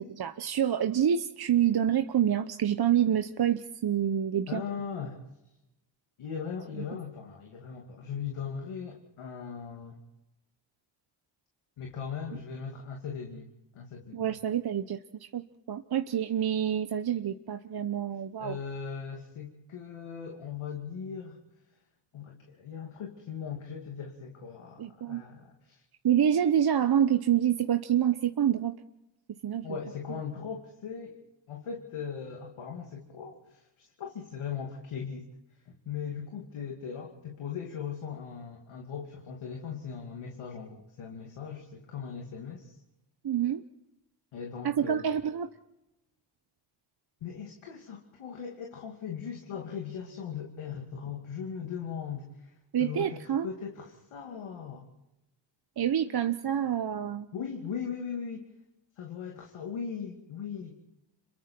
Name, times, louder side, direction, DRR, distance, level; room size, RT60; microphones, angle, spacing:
voice 1, 0.0-4.6 6.8-6.9 14.1-18.6 24.8-25.2 26.0-28.7 29.4-29.6 43.2-43.6 44.6-45.5 52.7-53.5 55.8-57.3, right 9 dB, 50° right, 8 dB, 1.0 m, -27 dB
voice 2, 4.5-5.2 6.2-10.0 11.8-14.4 18.4-21.4 22.1-25.8 29.6-31.2 31.5-35.3 35.7-42.8 44.3-45.1 47.2-52.5 52.8-54.9 56.1-56.2 57.3-58.5 59.0-60.8, left 7 dB, 75° left, 1 dB, 2.7 m, -39 dB
26.5 x 22.5 x 4.6 m, 0.91 s
supercardioid pair, 60°, 49 cm